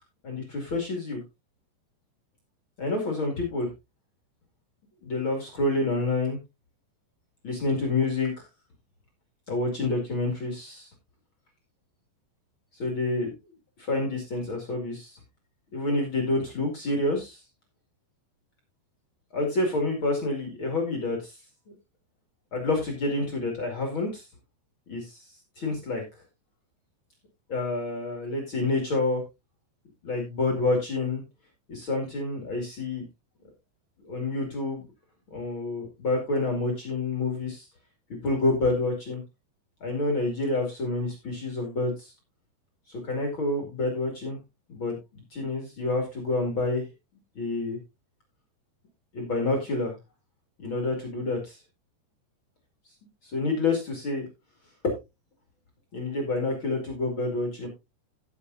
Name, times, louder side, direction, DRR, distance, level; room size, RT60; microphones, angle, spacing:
voice 1, 0.2-1.2 2.8-3.7 5.0-6.4 7.4-8.5 9.5-10.9 12.8-13.3 13.8-15.2 15.7-17.4 19.3-21.4 22.5-24.2 24.9-25.3 25.6-26.0 27.5-29.2 30.0-31.2 31.7-33.0 34.0-34.8 35.3-37.7 38.1-39.2 39.8-42.1 42.9-44.4 44.7-46.8 47.3-47.8 49.1-49.9 50.6-51.6 53.3-54.3 54.8-54.9 55.9-57.7, left 2 dB, 35° left, 2 dB, 2.4 m, -28 dB
17.0 x 6.7 x 2.6 m, 0.23 s
omnidirectional pair, 5.0 m